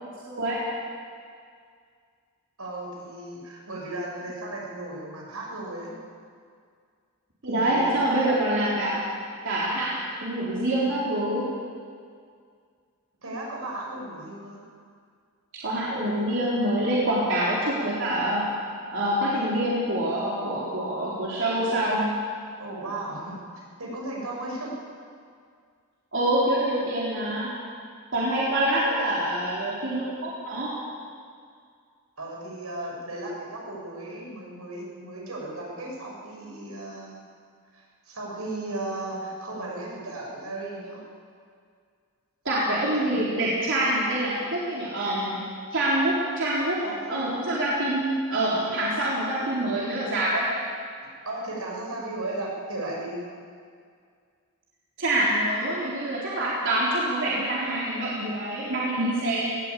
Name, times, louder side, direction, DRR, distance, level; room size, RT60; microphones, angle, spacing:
voice 1, 0.2-0.6 7.4-9.0 9.4-11.4 15.6-18.5 18.9-22.1 26.1-27.5 28.1-30.7 42.4-45.4 45.7-46.8 47.1-50.5 55.0-59.6, right 1 dB, 60° right, -7 dB, 3.9 m, -25 dB
voice 2, 2.6-5.9 7.5-8.1 13.2-14.6 22.6-23.4 23.8-24.7 32.2-37.2 37.7-41.1 46.8-47.2 51.2-53.2, right 2 dB, 80° right, -2 dB, 6.5 m, -35 dB
20.0 x 17.5 x 8.4 m, 2.1 s
head